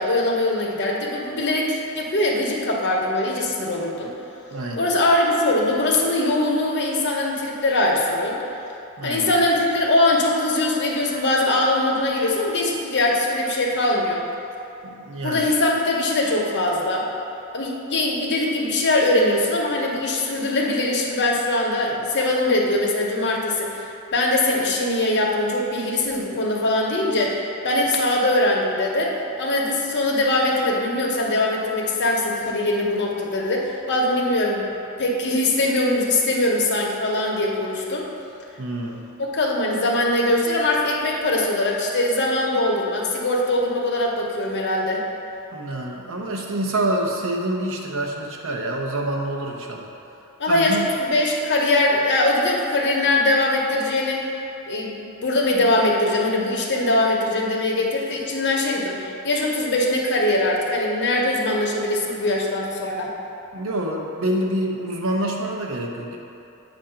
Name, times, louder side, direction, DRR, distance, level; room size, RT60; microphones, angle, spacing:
voice 1, 0.0-4.1 4.8-8.4 9.0-14.2 15.2-17.1 17.5-23.9 24.1-34.7 35.0-38.1 39.2-45.0 50.4-54.2 54.7-63.1, left 2 dB, 55° left, -2 dB, 0.8 m, -22 dB
voice 2, 4.5-4.9 9.0-9.4 14.8-15.4 38.6-39.0 45.5-49.9 50.5-50.9 63.5-66.2, right 1 dB, 65° right, 0 dB, 0.7 m, -27 dB
7.5 x 2.5 x 5.7 m, 2.8 s
head